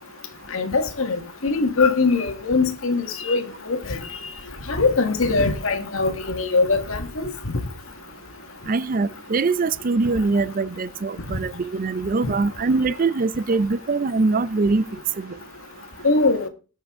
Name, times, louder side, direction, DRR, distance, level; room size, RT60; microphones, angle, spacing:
voice 1, 0.5-4.0 4.7-7.3 12.2-12.3 16.0-16.5, left 3 dB, 80° left, 1.6 m, -22 dB
voice 2, 8.7-14.9 15.2-15.3, right 3 dB, 40° right, 0.4 m, -23 dB
19.0 x 6.5 x 3.6 m
head